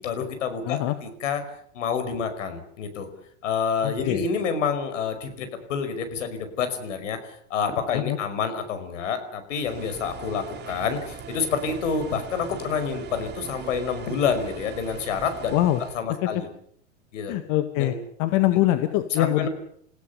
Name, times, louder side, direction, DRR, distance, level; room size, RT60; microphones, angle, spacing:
voice 1, 0.0-1.4 1.7-3.1 3.4-7.2 7.5-15.5 15.9-16.5 17.1-17.3 17.8-17.9 19.1-19.5, left 6 dB, 75° left, 8 dB, 5.5 m, -28 dB
voice 2, 0.6-0.9 3.8-4.2 7.9-8.2 15.5-15.8 17.3-19.5, left 15 dB, 50° left, 9 dB, 1.9 m, -23 dB
sound 1, 9.5-16.0, right 7 dB, 25° right, 3.2 m, -40 dB
29.5 x 16.5 x 6.9 m, 0.64 s
hypercardioid pair, 110°, 38 cm